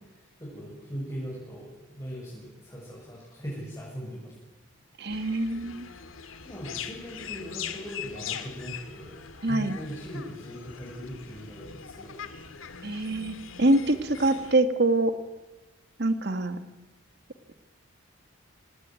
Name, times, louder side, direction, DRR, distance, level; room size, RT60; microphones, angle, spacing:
voice 1, 0.1-4.4 6.4-9.2 9.5-12.2, equal, 15° left, -6 dB, 7.2 m, -39 dB
voice 2, 5.0-5.9 9.4-9.8 12.8-15.1 16.0-16.6, right 2 dB, 50° right, 9 dB, 1.6 m, -25 dB
sound 1, 5.1-14.5, left 7 dB, 70° left, 2.0 m, -41 dB
25.5 x 19.5 x 9.5 m, 1.0 s
head